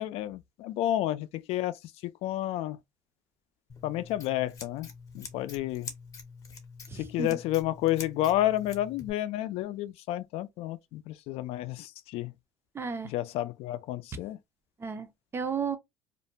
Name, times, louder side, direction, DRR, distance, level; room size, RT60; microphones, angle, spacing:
voice 1, 0.0-2.8 3.8-4.9 5.1-5.9 6.9-12.3 13.1-14.4, left 14 dB, 70° left, 0.4 m, -31 dB
Scissors, 3.7-9.1, left 5 dB, 30° left, 0.7 m, -46 dB
voice 2, 6.9-7.4 12.7-13.1 14.8-15.8, right 6 dB, 25° right, 0.5 m, -34 dB
2.5 x 2.2 x 2.7 m
cardioid pair, 125°, 11 cm